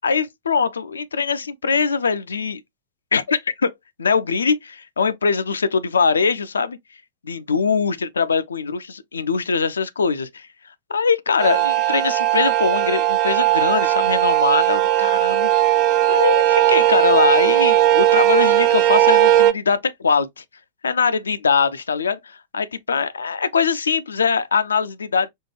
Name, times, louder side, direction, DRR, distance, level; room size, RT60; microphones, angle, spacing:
voice 1, 0.0-2.6 3.1-3.7 4.0-6.8 7.2-10.5 10.9-15.7 16.1-20.4 20.8-25.3, left 5 dB, 70° left, 0.4 m, -22 dB
sound 1, 11.4-19.5, right 13 dB, 40° right, 0.3 m, -17 dB
4.3 x 2.2 x 3.1 m
figure-of-eight pair, 95°, 0 cm